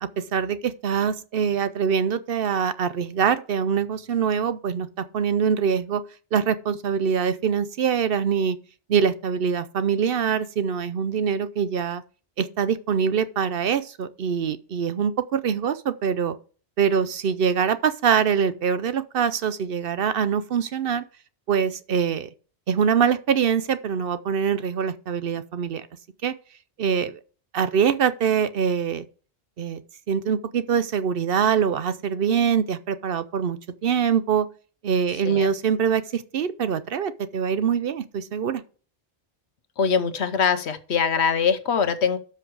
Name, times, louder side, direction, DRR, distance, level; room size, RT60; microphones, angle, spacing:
voice 1, 0.0-4.9 5.1-6.0 6.3-8.6 8.9-12.0 12.4-16.4 16.8-21.0 21.5-22.3 22.7-25.9 26.2-26.3 26.8-27.2 27.5-29.0 29.6-29.8 30.1-34.5 34.8-38.6, right 7 dB, 60° right, 0.8 m, -24 dB
voice 2, 39.8-42.2, left 6 dB, 80° left, 1.2 m, -23 dB
12.5 x 5.8 x 4.7 m
omnidirectional pair, 1.1 m